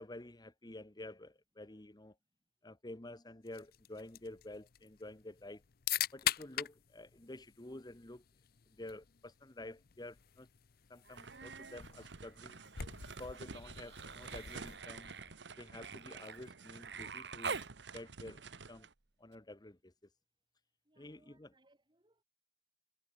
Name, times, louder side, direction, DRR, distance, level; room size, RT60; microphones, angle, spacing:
voice 1, 0.0-2.2 2.6-5.6 6.1-8.2 8.7-10.5 10.9-12.6 13.2-15.1 15.6-17.6 17.9-18.4 18.7-18.9 19.2-19.9 21.0-21.5, left 1 dB, 25° left, 1.3 m, -50 dB
voice 2, 2.2-2.5 20.8-22.2, right 2 dB, 25° right, 7.4 m, -72 dB
sound 1, 3.5-15.4, left 12 dB, 60° left, 0.7 m, -44 dB
Human voice, 11.0-11.8 12.1-17.7 19.3-19.4, right 5 dB, 70° right, 1.6 m, -47 dB
sound 2, 11.2-18.9, right 4 dB, 90° right, 1.3 m, -51 dB
head